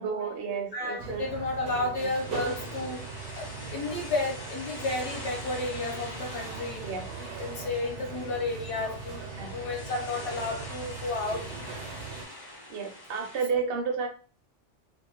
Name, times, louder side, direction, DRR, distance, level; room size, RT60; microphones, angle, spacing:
voice 1, 0.0-1.3 1.7-1.9 6.8-7.1 9.4-9.5 12.7-14.1, right 6 dB, 65° right, 3 dB, 0.7 m, -31 dB
voice 2, 0.7-3.0 3.3-6.8 7.2-11.4 13.5-13.7, left 2 dB, 70° left, 0 dB, 1.0 m, -32 dB
sound 1, 1.0-12.2, right 5 dB, 80° right, 1.0 m, -40 dB
sound 2, 1.9-13.4, left 1 dB, 30° left, 0.5 m, -44 dB
2.5 x 2.1 x 2.8 m, 0.40 s
omnidirectional pair, 1.2 m